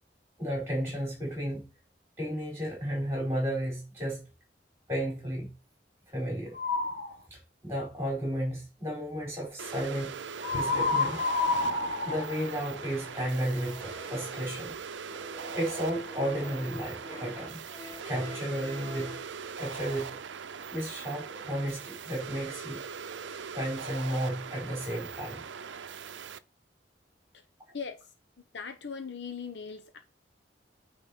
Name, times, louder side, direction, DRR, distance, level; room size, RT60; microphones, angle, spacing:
voice 1, 0.4-1.7 2.2-4.2 4.9-5.5 6.1-6.5 7.3-10.2 10.5-11.2 12.0-14.7 15.5-17.6 18.0-19.2 19.6-20.2 20.7-22.8 23.5-25.4, equal, 15° right, 4.5 m, -33 dB
sound 1, 6.5-7.1 10.4-13.2, left 3 dB, 55° left, 1.2 m, -29 dB
sound 2, 9.6-26.4, right 6 dB, 85° right, 0.6 m, -41 dB
sound 3, 11.4-14.6 15.0-19.3, left 2 dB, 15° left, 2.5 m, -48 dB
voice 2, 28.5-30.0, left 5 dB, 70° left, 0.9 m, -39 dB
9.2 x 4.1 x 4.4 m
head